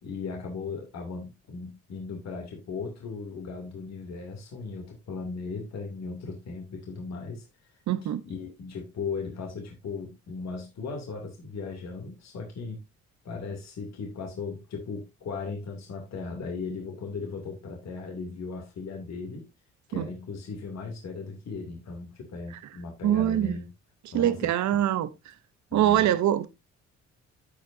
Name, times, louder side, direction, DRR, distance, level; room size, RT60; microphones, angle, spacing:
voice 1, 0.0-7.5 8.2-12.8 13.2-19.5 19.9-23.7 24.1-24.8 25.7-26.1, left 4 dB, 60° left, 2.8 m, -37 dB
voice 2, 7.9-8.2 19.9-20.1 23.0-23.6 24.1-25.3 25.7-26.5, right 11 dB, 70° right, 0.8 m, -24 dB
14.5 x 5.1 x 2.7 m
cardioid pair, 90°, 30 cm